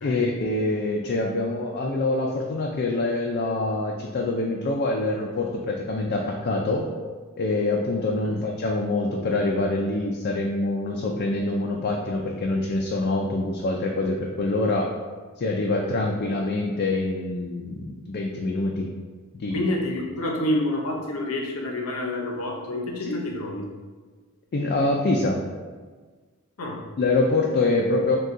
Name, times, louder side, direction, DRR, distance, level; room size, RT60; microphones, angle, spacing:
voice 1, 0.0-6.9 7.4-14.9 15.4-18.9 19.3-19.7 23.0-23.2 24.5-25.4 27.0-28.2, left 2 dB, 45° left, 0 dB, 0.4 m, -25 dB
voice 2, 19.5-23.7 26.6-26.9, left 1 dB, 80° left, 1 dB, 0.7 m, -28 dB
6.2 x 2.3 x 2.6 m, 1.4 s
head